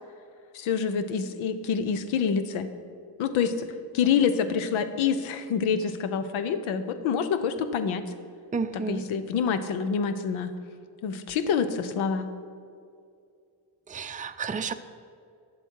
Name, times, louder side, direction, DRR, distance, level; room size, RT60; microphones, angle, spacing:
voice 1, 0.5-2.7 3.2-3.7 3.9-8.0 8.7-10.5 11.0-12.3, left 6 dB, 80° left, 10 dB, 0.8 m, -27 dB
voice 2, 8.5-9.0 13.9-14.7, right 5 dB, 15° right, 8 dB, 0.5 m, -31 dB
10.0 x 7.7 x 4.6 m, 2.3 s
supercardioid pair, 45°, 48 cm